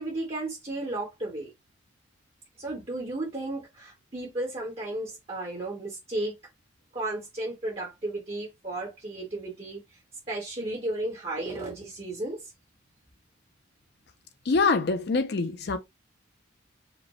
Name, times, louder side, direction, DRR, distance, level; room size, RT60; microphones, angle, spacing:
voice 1, 0.0-1.5 2.6-6.3 6.9-9.8 10.3-12.4, right 2 dB, 30° right, 1.2 m, -34 dB
voice 2, 14.5-15.8, left 4 dB, 55° left, 0.5 m, -24 dB
5.1 x 2.2 x 4.2 m
head